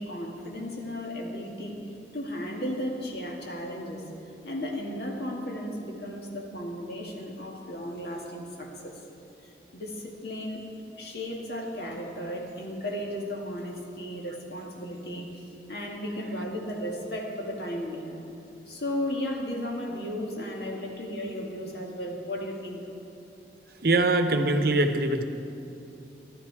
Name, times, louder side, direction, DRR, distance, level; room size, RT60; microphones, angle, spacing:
voice 1, 0.0-1.8 2.1-4.1 4.4-8.9 9.7-10.7 11.0-18.2 18.7-22.9, equal, 65° left, 0 dB, 2.0 m, -35 dB
voice 2, 23.8-25.2, right 2 dB, 60° right, 7 dB, 0.8 m, -23 dB
15.5 x 12.5 x 4.8 m, 2.7 s
head